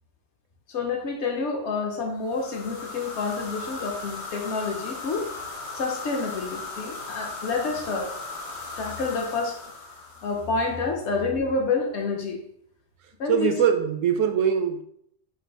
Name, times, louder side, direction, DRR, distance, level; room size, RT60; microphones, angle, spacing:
voice 1, 0.7-5.3 5.7-8.1 8.8-9.6 10.2-12.4 13.2-13.5, left 4 dB, 65° left, 3 dB, 0.9 m, -28 dB
sound 1, 2.2-10.8, left 3 dB, 85° left, 1.9 m, -37 dB
voice 2, 13.3-14.8, right 8 dB, 75° right, 7 dB, 0.9 m, -22 dB
5.0 x 2.3 x 4.5 m, 0.70 s
omnidirectional pair, 1.4 m